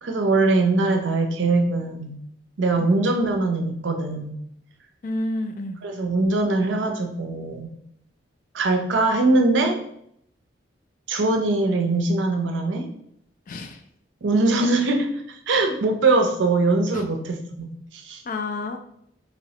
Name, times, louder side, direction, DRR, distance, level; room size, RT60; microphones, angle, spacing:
voice 1, 0.0-2.2 2.6-4.4 5.8-7.7 8.5-9.8 11.1-12.9 14.2-18.2, right 2 dB, 75° right, 4 dB, 0.5 m, -22 dB
voice 2, 5.0-5.8 13.5-13.8 16.9-17.0 18.3-18.8, left 2 dB, 45° left, 6 dB, 0.3 m, -30 dB
3.0 x 3.0 x 2.8 m, 0.72 s
head